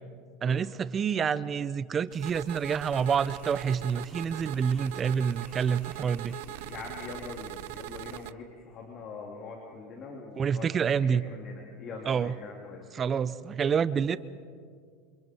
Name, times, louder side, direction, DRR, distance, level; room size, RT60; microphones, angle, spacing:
voice 1, 0.4-6.4 10.3-11.2 12.0-12.3 12.9-14.2, right 7 dB, 25° right, 16 dB, 0.7 m, -28 dB
sound 1, 2.1-8.3, right 17 dB, 70° right, 0.6 m, -41 dB
Laughter, 2.9-9.1, left 2 dB, 20° left, 3.5 m, -56 dB
voice 2, 6.5-10.7 11.0-12.8, left 4 dB, 40° left, -1 dB, 3.0 m, -43 dB
28.5 x 25.5 x 4.6 m, 2.1 s
supercardioid pair, 130°, 0 cm